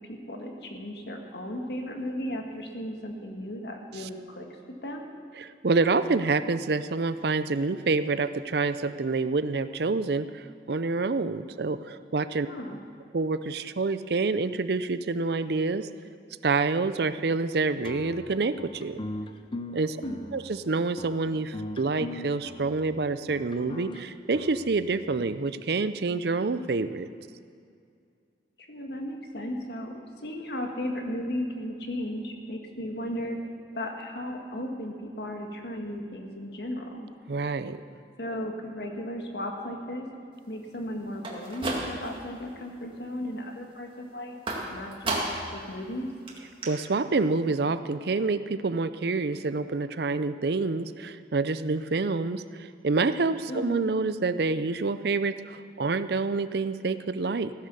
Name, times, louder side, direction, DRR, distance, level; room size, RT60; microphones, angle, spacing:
voice 1, 0.1-4.5 4.8-5.1 12.4-12.8 19.9-20.2 28.6-33.4 33.7-37.1 38.2-40.1 40.5-44.4 44.7-45.2 45.5-46.1 53.5-53.9, left 1 dB, 65° left, 3 dB, 1.8 m, -35 dB
voice 2, 5.4-12.5 13.1-15.9 16.4-19.0 19.7-20.0 20.3-27.1 37.3-37.8 46.6-57.7, right 3 dB, 60° right, 13 dB, 0.5 m, -27 dB
sound 1, 17.8-25.3, left 1 dB, 30° left, 0.6 m, -40 dB
sound 2, 41.1-42.3 42.7-43.2 44.5-45.6 45.9-46.0 46.3-46.4 46.6-46.7, right 2 dB, 30° right, 2.1 m, -33 dB
16.0 x 10.5 x 6.9 m, 2.4 s
head